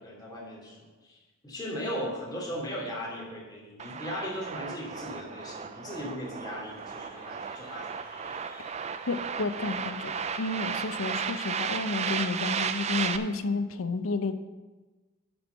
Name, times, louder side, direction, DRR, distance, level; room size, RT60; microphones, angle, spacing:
voice 1, 0.0-8.0, equal, 20° left, -4 dB, 2.6 m, -38 dB
sound 1, 3.8-13.2, right 6 dB, 30° right, 0.4 m, -34 dB
Crowd, 6.5-13.0, left 2 dB, 45° left, 2.2 m, -54 dB
voice 2, 9.1-10.1 10.4-14.3, left 3 dB, 80° left, 10 dB, 0.7 m, -31 dB
10.5 x 4.5 x 6.7 m, 1.2 s
head